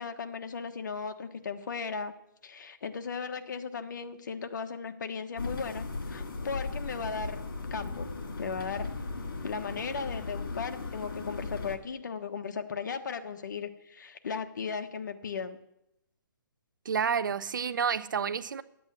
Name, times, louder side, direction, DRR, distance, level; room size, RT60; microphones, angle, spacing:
voice 1, 0.0-2.1 2.4-7.4 7.7-8.1 8.4-8.9 9.4-15.6, left 5 dB, 60° left, 1.2 m, -36 dB
sound 1, 5.4-11.8, left 3 dB, 75° left, 2.5 m, -37 dB
voice 2, 16.8-18.6, right 7 dB, 70° right, 0.8 m, -29 dB
10.5 x 8.4 x 8.5 m
hypercardioid pair, 160°, 11 cm